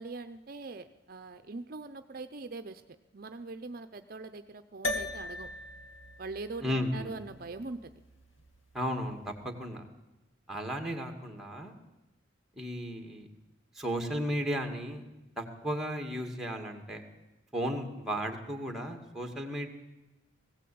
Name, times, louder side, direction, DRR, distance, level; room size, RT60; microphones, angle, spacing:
voice 1, 0.0-2.8 3.1-5.5 6.2-7.9, right 3 dB, 50° right, 10 dB, 0.7 m, -42 dB
sound 1, 4.8-9.4, left 2 dB, 85° left, 2.2 m, -40 dB
voice 2, 6.6-7.1 8.7-9.9 10.5-11.7 12.6-13.3 13.8-15.0 15.4-17.0 17.5-19.7, equal, ahead, 3 dB, 2.2 m, -34 dB
20.0 x 16.0 x 8.6 m, 1.0 s
head